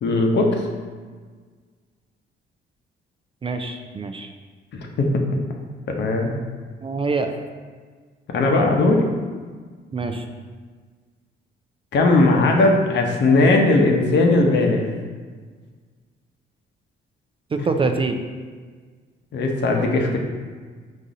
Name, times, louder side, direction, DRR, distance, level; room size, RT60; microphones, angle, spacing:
voice 1, 0.0-0.6 5.0-5.1 6.0-6.3 8.3-9.1 11.9-14.9 19.3-20.2, left 2 dB, 65° left, 1 dB, 0.8 m, -18 dB
voice 2, 3.4-4.3 6.8-7.3 9.9-10.3 17.5-18.2, right 3 dB, 25° right, 5 dB, 0.4 m, -25 dB
4.1 x 2.6 x 4.8 m, 1.5 s
cardioid pair, 90°, 20 cm